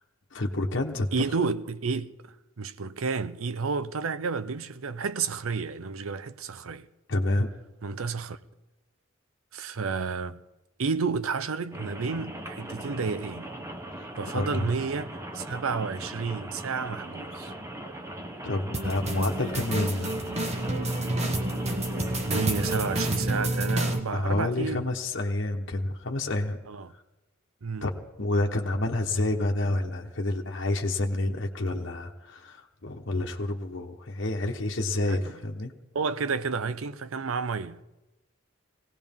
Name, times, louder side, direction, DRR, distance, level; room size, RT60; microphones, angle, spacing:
voice 1, 0.3-1.1 7.1-7.5 13.9-14.7 18.4-20.2 24.1-26.6 27.8-27.9 28.2-35.7, left 2 dB, 60° left, 1.1 m, -28 dB
voice 2, 1.1-6.9 7.8-8.4 9.5-10.4 10.8-13.5 14.2-17.5 19.3-19.4 22.2-24.8 26.7-26.9 27.6-27.9 35.1-35.2 35.9-37.8, right 5 dB, 85° right, 0.6 m, -31 dB
Rain, 11.7-23.2, right 1 dB, 15° right, 0.9 m, -39 dB
sound 1, 18.7-24.0, right 1 dB, 30° right, 1.3 m, -29 dB
19.5 x 17.0 x 3.6 m
head